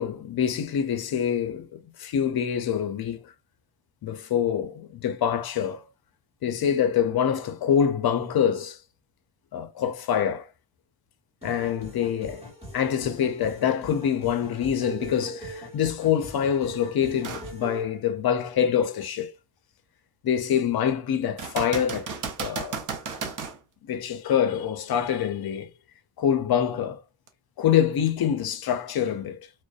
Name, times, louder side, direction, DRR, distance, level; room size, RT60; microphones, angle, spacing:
voice 1, 0.0-3.3 4.0-5.9 6.4-8.8 9.5-10.5 11.4-12.4 12.7-19.3 20.2-22.1 22.4-22.8 23.9-25.7 26.2-27.0 27.6-29.4, left 8 dB, 50° left, 0.5 m, -25 dB
sound 1, 11.4-17.8, right 1 dB, 15° right, 1.3 m, -41 dB
sound 2, 17.2-17.5 18.1-18.2 21.4-23.6 27.3-27.4, right 5 dB, 40° right, 0.6 m, -33 dB
2.5 x 2.1 x 2.3 m
cardioid pair, 120°, 48 cm